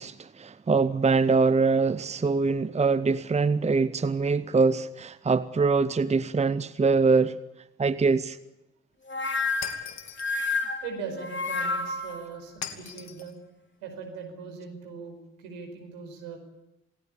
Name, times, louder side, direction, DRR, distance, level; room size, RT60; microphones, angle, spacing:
voice 1, 0.0-7.4 7.8-8.4, right 4 dB, 20° right, 0.9 m, -23 dB
sound 1, 9.1-12.2, left 3 dB, 35° left, 3.1 m, -29 dB
Shatter, 9.6-10.4 12.6-13.3, left 8 dB, 55° left, 2.6 m, -39 dB
voice 2, 10.8-13.4 13.8-16.4, right 5 dB, 75° right, 5.2 m, -40 dB
27.5 x 19.0 x 8.5 m
figure-of-eight pair, 40°, 33 cm